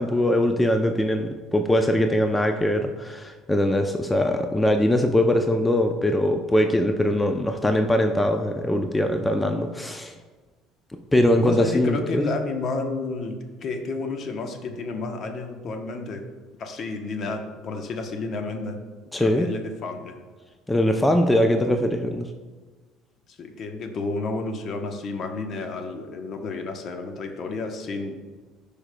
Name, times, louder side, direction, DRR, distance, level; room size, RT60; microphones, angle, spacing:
voice 1, 0.0-10.1 11.1-12.2 19.1-19.5 20.7-22.3, left 1 dB, 10° left, 5 dB, 0.5 m, -22 dB
voice 2, 11.3-16.2 16.6-18.8 19.2-20.1 23.3-28.2, left 3 dB, 50° left, 5 dB, 0.9 m, -31 dB
11.5 x 5.0 x 2.2 m, 1.4 s
supercardioid pair, 75°, 0 cm